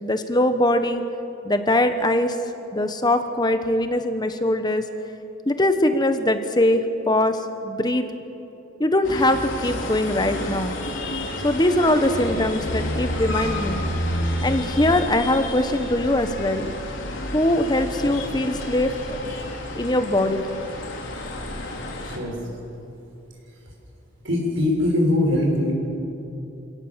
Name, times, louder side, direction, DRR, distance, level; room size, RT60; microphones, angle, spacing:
voice 1, 0.0-1.0 1.4-2.3 2.7-4.8 5.5-7.4 7.6-8.1 8.8-10.8 11.4-13.8 14.4-16.7 17.3-19.2 19.7-20.5, left 1 dB, 20° left, 8 dB, 1.1 m, -21 dB
sound 1, 9.0-22.2, left 1 dB, 75° left, 3.5 m, -30 dB
voice 2, 22.0-22.4 24.2-25.7, left 1 dB, 80° right, 0 dB, 6.1 m, -21 dB
27.5 x 17.5 x 7.4 m, 2.9 s
head